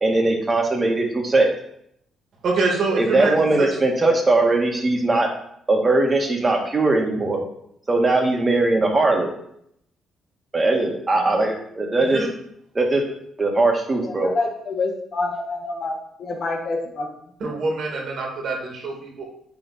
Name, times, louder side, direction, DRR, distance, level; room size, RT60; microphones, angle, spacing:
voice 1, 0.0-1.5 3.0-5.3 5.7-7.4 7.9-9.3 10.5-12.2 12.8-13.0 13.4-14.3, right 2 dB, 25° right, 1 dB, 1.7 m, -20 dB
voice 2, 2.4-3.7 12.1-12.3 17.4-19.3, right 3 dB, 65° right, 0 dB, 2.1 m, -25 dB
voice 3, 14.0-17.1, left 3 dB, 50° left, 1 dB, 1.6 m, -27 dB
9.2 x 3.8 x 4.2 m, 0.72 s
cardioid pair, 90°, 0 cm